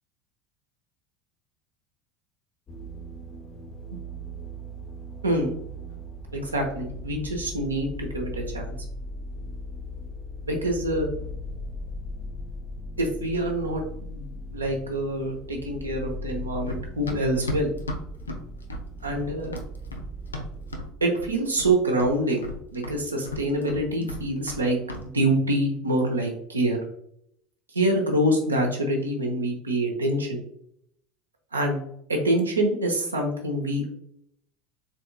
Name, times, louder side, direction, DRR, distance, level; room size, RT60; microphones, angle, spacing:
sound 1, 2.7-20.9, left 1 dB, 35° left, 0.7 m, -38 dB
voice 1, 6.3-8.8 10.5-11.1 13.0-17.7 19.0-19.5 21.0-22.4 22.7-26.8 27.7-30.4 31.5-31.8 32.1-33.9, right 1 dB, 90° right, 1 dB, 0.8 m, -26 dB
Run, 16.7-20.9 21.2-21.7 22.0-24.6 24.9-25.1, left 1 dB, 90° left, 0.4 m, -34 dB
4.0 x 3.7 x 2.3 m, 0.72 s
figure-of-eight pair, 75°, 0 cm